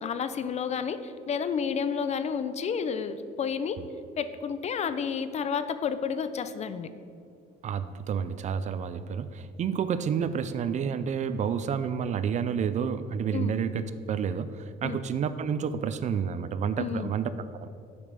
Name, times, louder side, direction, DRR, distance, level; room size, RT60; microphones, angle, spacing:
voice 1, 0.0-3.8 4.2-6.9 13.3-13.5 14.8-15.0 16.8-17.1, left 6 dB, 40° left, 11 dB, 0.5 m, -31 dB
voice 2, 7.6-17.7, right 7 dB, 45° right, 13 dB, 0.4 m, -30 dB
6.9 x 5.2 x 6.6 m, 2.4 s
cardioid pair, 110°, 17 cm